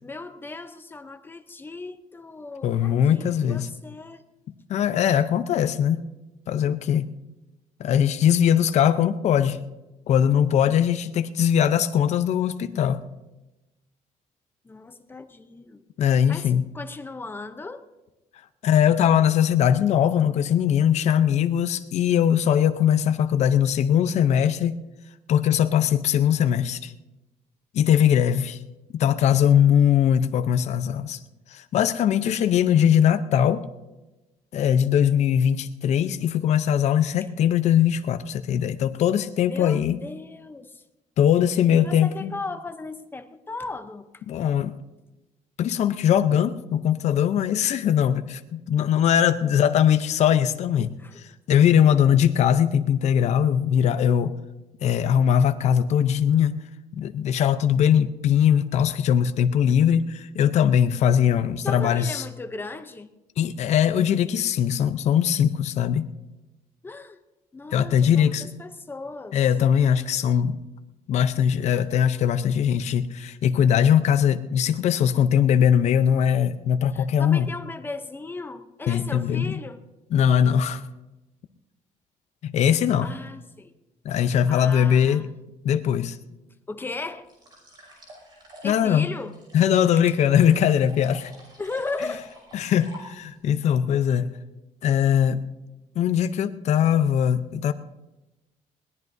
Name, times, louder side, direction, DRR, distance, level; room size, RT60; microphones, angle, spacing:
voice 1, 0.0-4.2 14.6-15.8 16.3-17.9 39.5-40.8 41.7-44.2 50.8-51.2 61.6-63.1 66.8-67.2 67.5-69.4 76.9-79.8 83.0-83.7 84.5-85.3 86.7-87.3 88.6-89.3 91.6-92.3, left 3 dB, 15° left, 9 dB, 0.7 m, -36 dB
voice 2, 2.6-3.7 4.7-6.0 6.5-7.1 7.8-9.7 10.1-13.0 16.0-16.7 18.6-24.8 25.3-26.9 27.7-28.6 28.9-31.2 31.5-33.6 34.5-40.0 41.2-42.3 44.3-44.7 45.6-54.3 54.8-56.6 56.9-62.2 63.4-66.1 67.7-68.5 69.3-70.6 71.1-77.5 78.9-79.5 80.1-80.8 82.4-83.1 84.0-85.3 85.6-86.2 88.6-89.1 89.5-91.3 92.5-94.3 94.8-95.5 96.0-97.7, left 9 dB, 55° left, 10 dB, 0.7 m, -21 dB
sound 1, 87.2-93.5, equal, 35° right, 6.0 m, -49 dB
21.5 x 18.0 x 2.7 m, 1.1 s
cardioid pair, 160°, 14 cm